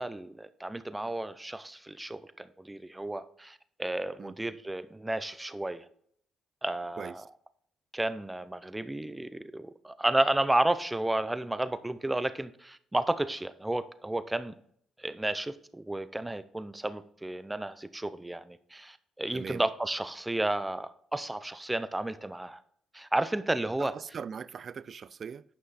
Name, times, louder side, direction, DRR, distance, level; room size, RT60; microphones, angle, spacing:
voice 1, 0.0-5.8 6.6-7.2 7.9-14.5 15.0-22.6 22.9-23.9, right 1 dB, 10° right, 0.6 m, -32 dB
voice 2, 23.8-25.4, right 6 dB, 50° right, 0.3 m, -40 dB
9.7 x 5.6 x 4.1 m
cardioid pair, 90°, 0 cm